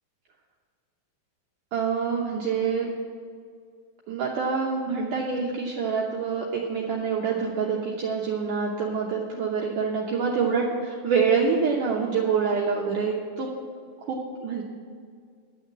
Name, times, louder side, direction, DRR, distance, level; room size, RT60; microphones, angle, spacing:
voice 1, 1.7-2.9 4.1-13.5 14.0-14.6, right 5 dB, 70° right, -1 dB, 2.1 m, -26 dB
11.0 x 7.2 x 8.6 m, 2.1 s
omnidirectional pair, 4.6 m